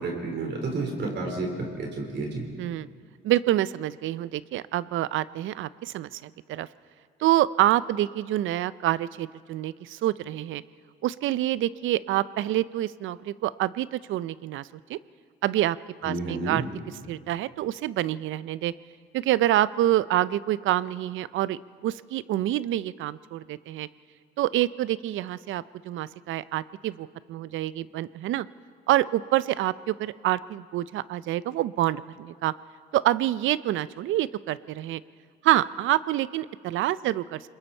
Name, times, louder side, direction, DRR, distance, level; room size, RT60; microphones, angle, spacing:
voice 1, 0.0-2.4 16.0-16.6, right 3 dB, 65° right, 1 dB, 4.5 m, -31 dB
voice 2, 2.6-2.9 3.2-6.7 7.2-10.6 11.0-15.0 15.4-15.8 16.0-16.6 17.1-18.7 19.1-23.9 24.4-28.5 28.9-32.5 32.9-35.0 35.4-37.4, right 14 dB, 80° right, 18 dB, 0.5 m, -27 dB
28.0 x 21.0 x 4.4 m, 2.2 s
cardioid pair, 90°, 20 cm